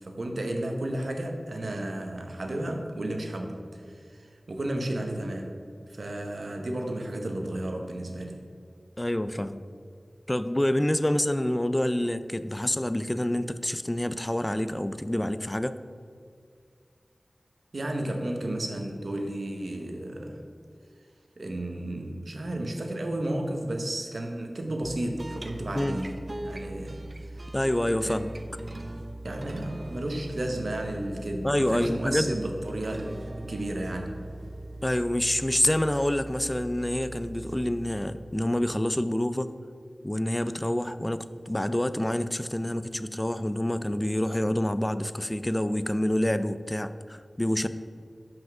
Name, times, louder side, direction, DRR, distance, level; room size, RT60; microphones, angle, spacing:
voice 1, 0.0-5.6 5.9-8.4 17.7-20.4 21.4-27.0 27.3-27.4 28.1-28.2 29.2-34.2, right 1 dB, 80° right, 3 dB, 0.9 m, -33 dB
voice 2, 9.0-9.6 10.3-15.8 25.8-26.0 27.5-28.3 31.4-32.4 34.8-39.5 40.0-47.7, left 1 dB, 20° left, 12 dB, 0.4 m, -27 dB
sound 1, 24.8-38.4, right 1 dB, 50° right, 0.6 m, -40 dB
5.7 x 5.3 x 6.0 m, 2.2 s
wide cardioid pair, 45°, 0 cm